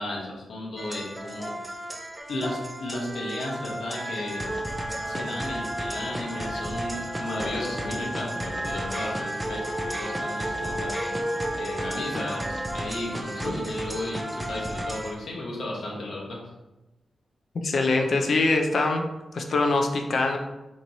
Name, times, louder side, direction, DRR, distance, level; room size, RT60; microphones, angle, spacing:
voice 1, 0.0-1.7 2.3-4.5 5.0-11.0 11.6-16.4, left 1 dB, 80° left, -4 dB, 0.9 m, -34 dB
sound 1, 0.8-15.2, right 1 dB, 10° right, 0.3 m, -33 dB
sound 2, 4.0-12.9, right 1 dB, 65° right, 0.8 m, -36 dB
voice 2, 17.5-19.0 19.3-20.4, left 3 dB, 60° left, 3 dB, 0.4 m, -23 dB
4.2 x 3.0 x 2.6 m, 1.0 s
wide cardioid pair, 130°, 0 cm